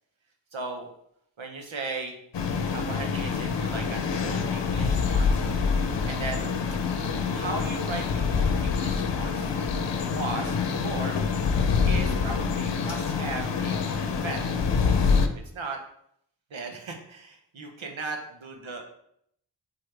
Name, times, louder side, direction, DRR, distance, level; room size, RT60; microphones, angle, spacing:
voice 1, 0.5-0.9 1.4-2.2 2.7-5.4 6.1-6.5 7.3-9.5 10.0-11.2 11.9-14.5 15.5-15.8 16.5-18.8, right 3 dB, 90° right, 2 dB, 1.1 m, -37 dB
sound 1, 2.3-15.3, left 5 dB, 65° left, 0.7 m, -26 dB
7.6 x 4.1 x 3.4 m, 0.73 s
cardioid pair, 45°, 45 cm